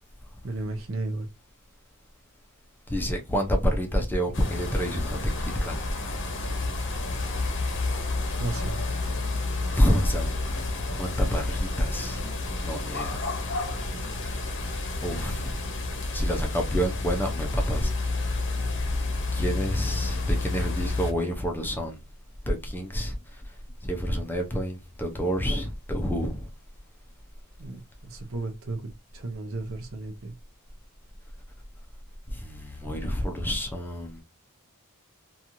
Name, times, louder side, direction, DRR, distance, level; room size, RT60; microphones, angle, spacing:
voice 1, 0.4-1.3 8.4-9.0 27.6-30.3, right 2 dB, 65° right, 0.6 m, -34 dB
voice 2, 2.9-5.7 8.5-9.2 9.7-10.7 11.0-12.3 12.6-13.2 15.0-15.5 16.1-17.9 19.3-22.0 22.5-23.1 23.8-26.5 32.3-34.2, equal, 10° left, 0.5 m, -28 dB
sound 1, 4.3-21.1, left 2 dB, 55° left, 0.7 m, -30 dB
2.9 x 2.4 x 2.5 m
head